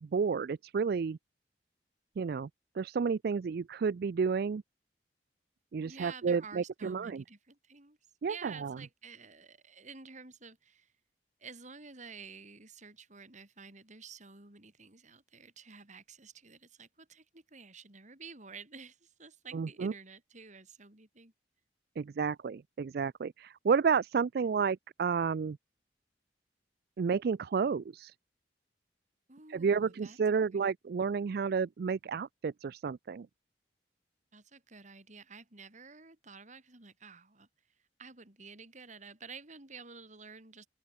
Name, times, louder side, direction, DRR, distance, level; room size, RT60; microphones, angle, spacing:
voice 1, 0.0-1.2 2.2-2.5 2.8-4.6 5.7-7.2 8.2-8.8 19.5-19.9 22.0-25.6 27.0-28.1 29.5-33.3, right 5 dB, 60° right, 0.4 m, -31 dB
voice 2, 5.8-8.0 8.3-10.9 11.4-21.3 29.3-30.2 30.5-30.6 34.3-37.5 38.0-40.7, right 5 dB, 45° right, 3.8 m, -51 dB
open air
head